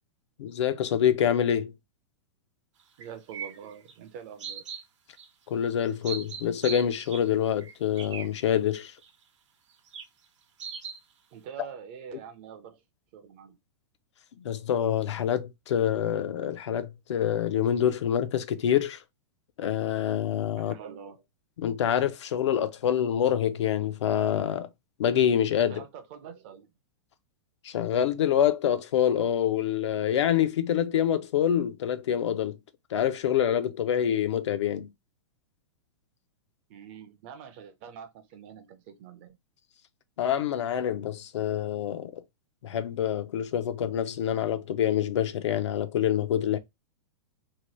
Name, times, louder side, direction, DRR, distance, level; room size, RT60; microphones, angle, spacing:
voice 1, 0.4-1.7 5.5-8.9 14.4-19.0 19.6-20.7 21.6-24.7 25.0-25.8 27.6-32.6 32.9-34.9 40.2-42.2 42.6-46.6, left 9 dB, 70° left, 0.5 m, -26 dB
voice 2, 3.0-4.6 11.3-12.8 13.1-13.6 20.6-21.2 25.7-26.7 36.7-39.4, right 7 dB, 25° right, 0.4 m, -45 dB
sound 1, 3.0-3.9 4.4-4.8 5.2-5.3 5.9-7.3 7.6-8.3 9.0-9.1 9.9-10.0 10.6-11.0, right 7 dB, 80° right, 0.7 m, -38 dB
2.8 x 2.2 x 3.0 m
supercardioid pair, 170°, 15 cm